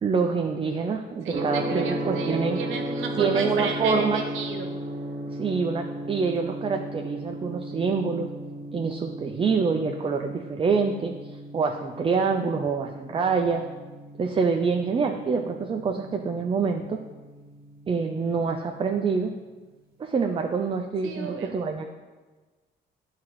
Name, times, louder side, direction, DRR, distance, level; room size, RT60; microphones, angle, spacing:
voice 1, 0.0-2.6 3.2-4.2 5.4-8.3 8.7-13.6 14.2-17.0 17.9-19.3 20.0-21.9, right 5 dB, 25° right, 4 dB, 0.4 m, -26 dB
voice 2, 1.2-4.7 21.0-21.6, right 5 dB, 85° right, 3 dB, 0.9 m, -33 dB
Gong, 1.3-19.2, right 1 dB, 50° right, 0.9 m, -36 dB
8.7 x 3.7 x 3.0 m, 1.3 s
cardioid pair, 90°, 20 cm